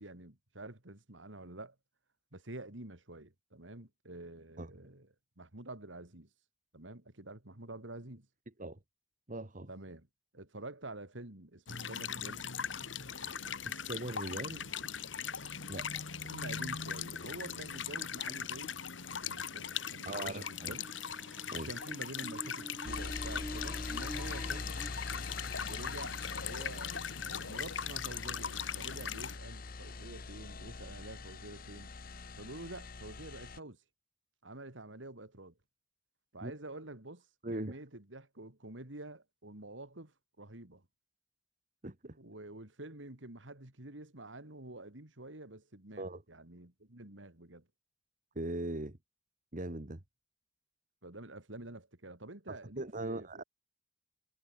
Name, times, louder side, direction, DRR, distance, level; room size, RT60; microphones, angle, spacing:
voice 1, 0.0-1.7 2.3-5.1 5.4-6.3 6.7-8.3 9.7-10.1 10.3-12.4 16.3-18.7 19.2-20.9 21.5-24.8 25.7-31.9 32.4-33.8 34.4-35.5 36.3-37.2 37.5-40.8 42.2-47.7 51.0-53.4, right 2 dB, 85° right, 3.3 m, -48 dB
voice 2, 9.3-9.7 13.2-14.7 15.7-15.9 20.1-20.8 21.5-21.7 36.4-36.5 37.4-37.8 41.8-42.2 46.0-46.2 48.4-49.0 49.5-50.0 52.5-53.4, right 2 dB, 45° right, 1.9 m, -40 dB
sound 1, 11.7-29.4, left 7 dB, 85° left, 2.4 m, -40 dB
sound 2, 20.3-24.9 26.6-26.8, equal, 5° right, 1.5 m, -48 dB
sound 3, 22.8-33.6, left 4 dB, 50° left, 1.1 m, -43 dB
head